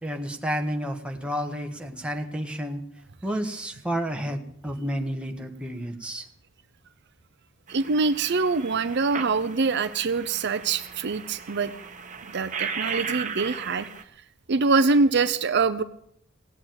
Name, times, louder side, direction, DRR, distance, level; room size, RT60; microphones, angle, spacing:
voice 1, 0.0-2.8 3.2-6.3, equal, 5° right, 3 dB, 1.5 m, -31 dB
sound 1, 7.7-14.0, right 6 dB, 40° right, 1.3 m, -36 dB
voice 2, 7.7-11.7 12.3-13.9 14.5-15.8, right 4 dB, 55° right, 12 dB, 0.6 m, -24 dB
17.0 x 8.6 x 9.0 m, 0.70 s
head